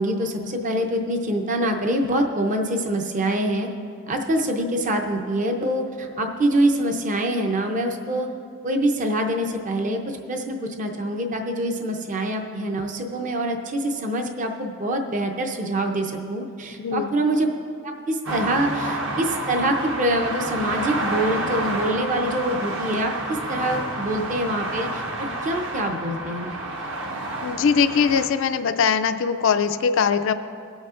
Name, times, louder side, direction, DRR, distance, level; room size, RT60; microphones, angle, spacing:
voice 1, 0.0-3.7 4.1-8.3 8.6-17.5 17.8-26.5, right 1 dB, 35° right, 3 dB, 0.6 m, -25 dB
voice 2, 16.8-17.1 27.4-30.3, left 6 dB, 60° left, 9 dB, 0.4 m, -21 dB
sound 1, 18.3-28.3, right 1 dB, 60° right, 1.1 m, -29 dB
21.5 x 8.1 x 2.5 m, 2.4 s
head